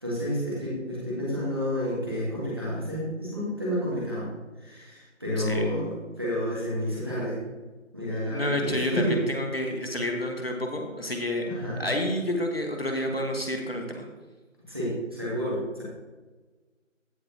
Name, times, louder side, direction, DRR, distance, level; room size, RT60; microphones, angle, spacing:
voice 1, 0.0-4.3 4.6-7.4 7.9-9.2 11.5-11.8 14.7-15.8, equal, 20° right, -8 dB, 1.9 m, -30 dB
voice 2, 8.3-11.5 11.8-14.0, left 1 dB, 50° left, 2 dB, 1.4 m, -29 dB
15.5 x 5.3 x 2.9 m, 1.2 s
figure-of-eight pair, 175°, 39 cm